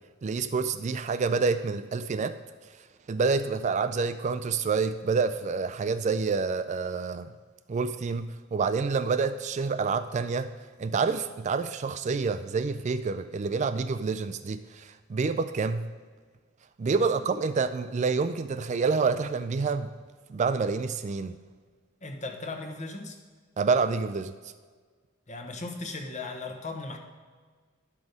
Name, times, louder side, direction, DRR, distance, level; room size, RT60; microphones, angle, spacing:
voice 1, 0.2-2.4 3.1-7.3 7.7-10.5 10.8-15.9 16.8-19.9 20.3-21.4 23.6-24.3, right 4 dB, 35° right, 11 dB, 0.3 m, -28 dB
voice 2, 22.0-23.2 25.3-27.0, left 3 dB, 35° left, 5 dB, 1.1 m, -37 dB
11.0 x 6.1 x 5.2 m, 1.5 s
head